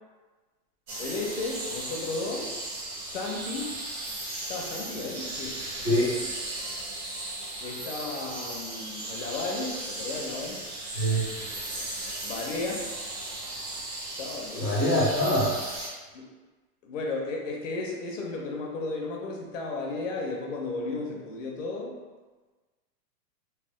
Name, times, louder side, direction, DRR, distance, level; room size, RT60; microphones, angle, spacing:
sound 1, 0.9-15.9, right 2 dB, 75° right, 1.3 m, -36 dB
voice 1, 1.0-2.5 3.0-3.7 4.5-5.6 7.6-10.6 12.2-13.0 14.2-14.7 16.1-16.3 16.8-21.9, left 3 dB, 50° left, -1 dB, 0.6 m, -34 dB
voice 2, 14.6-15.6, equal, 20° right, -13 dB, 0.4 m, -24 dB
3.1 x 2.0 x 2.9 m, 1.3 s
supercardioid pair, 160°, 49 cm